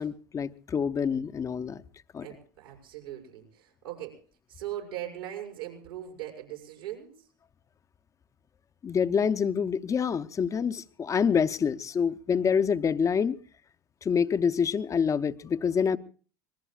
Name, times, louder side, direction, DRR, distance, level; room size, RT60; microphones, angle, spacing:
voice 1, 0.0-1.8 2.1-2.3 8.8-13.4 14.0-16.0, left 6 dB, 25° left, 0.8 m, -26 dB
voice 2, 2.2-4.2 4.5-7.3, right 12 dB, 80° right, 6.3 m, -40 dB
26.0 x 20.5 x 2.4 m
hypercardioid pair, 85°, 12 cm